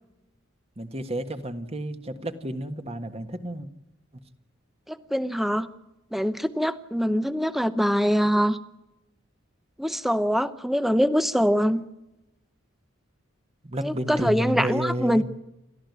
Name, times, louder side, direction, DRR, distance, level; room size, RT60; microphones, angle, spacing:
voice 1, 0.8-3.7 13.6-15.2, right 1 dB, 30° right, 8 dB, 1.5 m, -31 dB
voice 2, 4.9-5.7 6.1-8.6 9.8-11.9 13.8-15.2, equal, ahead, 13 dB, 0.8 m, -23 dB
29.0 x 13.5 x 9.5 m, 0.93 s
head